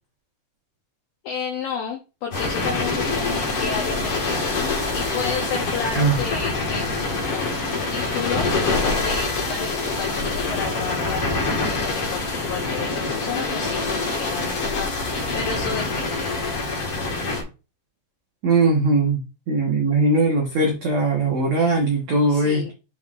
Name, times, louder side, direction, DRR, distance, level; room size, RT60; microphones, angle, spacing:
voice 1, 1.2-16.4 22.3-22.7, left 6 dB, 75° left, 0 dB, 2.2 m, -32 dB
sound 1, 2.3-17.4, left 3 dB, 55° left, 1.6 m, -25 dB
voice 2, 18.4-19.2 19.5-22.7, right 2 dB, 85° right, -1 dB, 1.5 m, -20 dB
7.8 x 4.8 x 2.5 m, 0.30 s
omnidirectional pair, 5.2 m